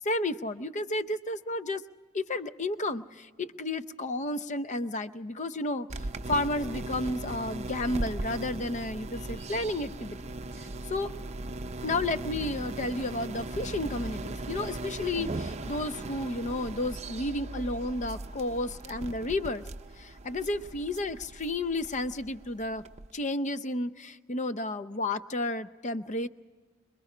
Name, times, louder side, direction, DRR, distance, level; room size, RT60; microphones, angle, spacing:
voice 1, 0.0-1.8 2.1-5.9 6.3-10.2 10.6-11.1 11.8-19.6 20.0-22.8 23.1-26.3, left 2 dB, 35° left, 13 dB, 0.6 m, -32 dB
sound 1, 5.9-23.1, right 2 dB, 30° right, 0.6 m, -38 dB
26.0 x 22.0 x 4.9 m, 1.4 s
head